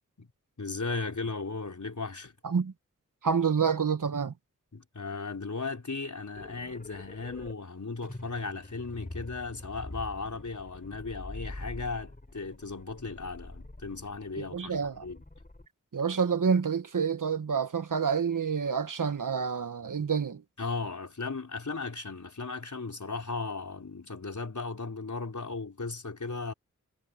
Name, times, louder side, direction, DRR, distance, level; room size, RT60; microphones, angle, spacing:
voice 1, 0.6-2.4 4.7-15.2 20.6-26.5, left 4 dB, 70° left, 4.6 m, -36 dB
voice 2, 3.2-4.3 14.4-15.0 15.9-20.4, right 6 dB, 90° right, 1.2 m, -28 dB
sound 1, 6.4-7.5 8.0-15.7, left 2 dB, 30° left, 3.1 m, -45 dB
wide cardioid pair, 60°, 31 cm